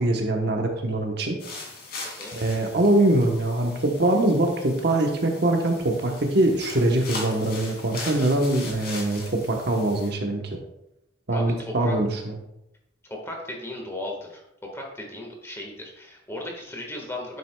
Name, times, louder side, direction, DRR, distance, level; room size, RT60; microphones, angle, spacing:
voice 1, 0.0-1.4 2.3-10.6 11.3-12.4, right 1 dB, 60° right, 2 dB, 1.0 m, -23 dB
sound 1, 1.4-10.1, left 3 dB, 55° left, 2.5 m, -40 dB
voice 2, 11.3-12.0 13.1-14.4 14.7-17.4, left 1 dB, 15° left, 0 dB, 1.5 m, -36 dB
9.4 x 7.6 x 2.3 m, 0.85 s
head